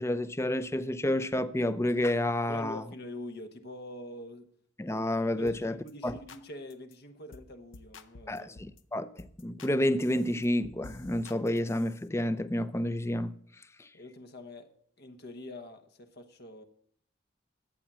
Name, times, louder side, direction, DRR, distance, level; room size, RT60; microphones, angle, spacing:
voice 1, 0.0-2.8 4.8-5.8 6.0-6.2 8.3-13.3, left 1 dB, 15° left, 0.5 m, -29 dB
voice 2, 2.5-4.5 5.2-8.5 13.9-16.6, left 1 dB, 55° left, 1.1 m, -45 dB
sound 1, 5.5-5.6 5.9-6.4 6.7-6.9 7.3-7.5 7.7-8.8 9.2-9.7 10.0-12.0, left 3 dB, 75° left, 0.8 m, -51 dB
11.5 x 8.5 x 7.4 m
head